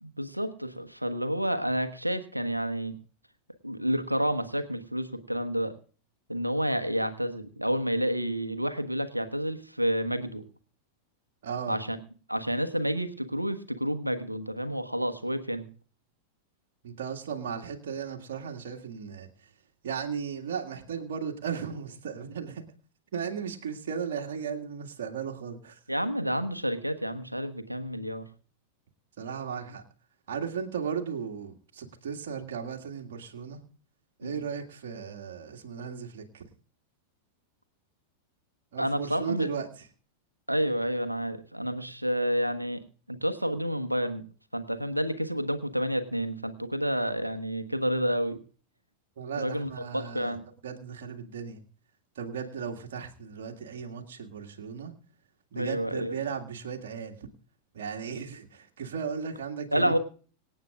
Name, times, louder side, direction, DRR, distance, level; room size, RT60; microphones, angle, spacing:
voice 1, 0.0-3.0 3.6-5.7 6.3-10.4 11.7-12.0 12.3-15.6 25.9-28.2 34.2-34.4 38.8-39.5 40.5-42.8 43.1-44.2 44.5-48.4 49.4-50.4 55.5-56.1 59.7-60.0, equal, 90° right, 10 dB, 1.3 m, -29 dB
voice 2, 11.4-11.8 16.8-19.3 19.8-22.6 23.1-25.8 29.2-29.8 30.3-33.6 34.2-36.4 38.7-39.9 49.2-50.4 50.6-51.6 52.2-54.9 55.5-57.2 57.7-60.0, right 7 dB, 60° right, 1 dB, 2.0 m, -36 dB
25.5 x 8.8 x 2.5 m, 0.39 s
figure-of-eight pair, 90°, 0 cm